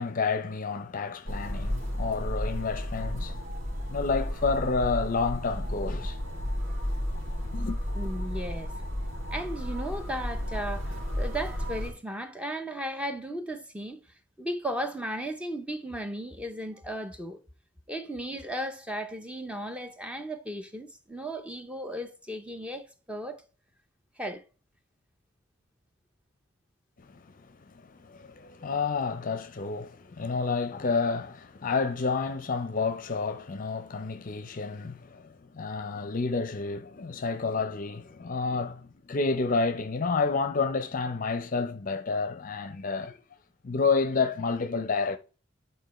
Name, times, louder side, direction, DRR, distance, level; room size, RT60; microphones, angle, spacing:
voice 1, 0.0-3.4 3.9-6.2 7.5-7.8 27.0-43.2 43.6-45.2, left 4 dB, 40° left, 0.6 m, -30 dB
sound 1, 1.3-11.9, equal, 75° right, 2.5 m, -33 dB
voice 2, 7.9-8.7 9.3-14.0 14.4-17.4 17.9-23.4 24.2-24.4, right 1 dB, 5° right, 0.6 m, -35 dB
9.0 x 4.3 x 3.1 m
head